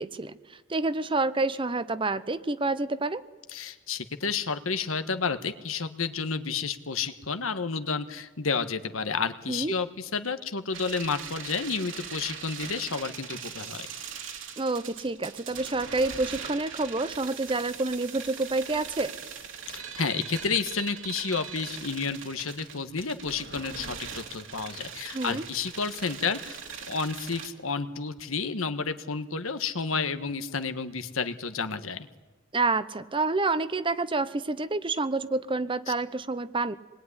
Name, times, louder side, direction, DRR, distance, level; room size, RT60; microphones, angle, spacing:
voice 1, 0.0-3.2 9.5-9.7 14.6-19.1 25.1-25.5 32.5-36.8, right 3 dB, 25° right, 14 dB, 0.7 m, -28 dB
voice 2, 3.5-13.9 19.7-26.6 26.9-32.1, left 5 dB, 80° left, 10 dB, 1.4 m, -31 dB
sound 1, 10.7-27.5, right 7 dB, 65° right, 2.5 m, -41 dB
26.5 x 21.0 x 9.8 m, 1.3 s
head